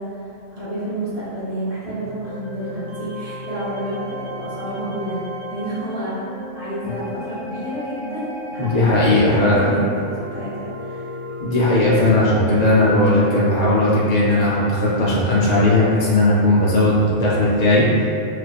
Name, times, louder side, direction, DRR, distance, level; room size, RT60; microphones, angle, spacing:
voice 1, 0.0-5.2 5.5-11.1, right 1 dB, 45° right, -10 dB, 0.5 m, -30 dB
sound 1, 1.9-17.7, equal, 75° right, 0.9 m, -35 dB
voice 2, 8.6-9.7 11.4-18.1, left 1 dB, 75° left, -7 dB, 0.3 m, -17 dB
2.4 x 2.4 x 2.2 m, 2.5 s
omnidirectional pair, 1.3 m